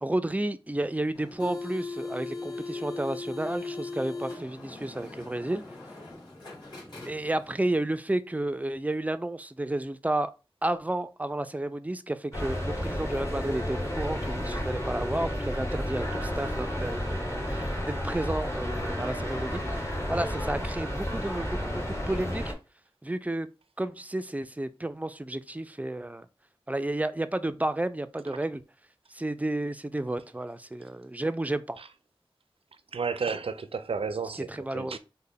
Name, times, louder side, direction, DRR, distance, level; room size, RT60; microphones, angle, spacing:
voice 1, 0.0-5.6 7.0-10.3 10.6-17.7 18.0-22.5 23.0-23.5 23.8-26.3 26.7-28.6 29.1-31.8 34.5-35.0, right 1 dB, 15° right, 0.3 m, -31 dB
sound 1, 1.1-7.6, left 3 dB, 50° left, 1.9 m, -39 dB
sound 2, 12.3-22.5, equal, 30° left, 1.0 m, -32 dB
voice 2, 32.9-35.0, right 5 dB, 85° right, 0.4 m, -33 dB
3.3 x 2.1 x 3.5 m
wide cardioid pair, 50°, 9 cm